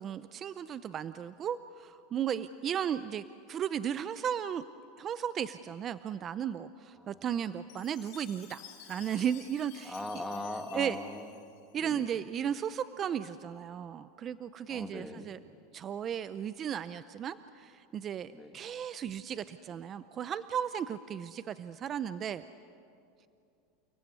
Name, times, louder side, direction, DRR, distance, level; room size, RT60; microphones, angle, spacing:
voice 1, 0.0-4.6 5.0-10.2 10.7-11.0 11.7-15.4 15.7-22.4, right 9 dB, 30° right, 14 dB, 0.6 m, -35 dB
Chime, 7.7-12.0, left 10 dB, 60° left, 4.9 m, -53 dB
voice 2, 9.8-11.3 11.8-12.2 14.7-15.4 18.3-18.6, left 2 dB, 5° left, 5 dB, 2.0 m, -40 dB
29.5 x 18.5 x 9.7 m, 2.5 s
supercardioid pair, 140°, 0 cm